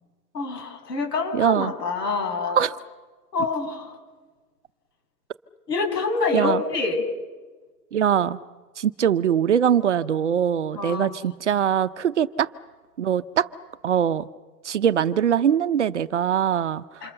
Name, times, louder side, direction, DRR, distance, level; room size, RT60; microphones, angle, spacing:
voice 1, 0.3-2.6 3.3-4.0 5.7-7.0 10.7-11.2 17.0-17.1, left 4 dB, 80° left, 4 dB, 7.5 m, -26 dB
voice 2, 1.3-1.7 2.6-2.7 6.3-6.6 7.9-8.4 8.8-12.5 13.0-13.5 13.8-14.3 14.6-16.8, right 9 dB, 45° right, 12 dB, 0.7 m, -22 dB
28.0 x 27.0 x 6.9 m, 1.3 s
hypercardioid pair, 180°, 48 cm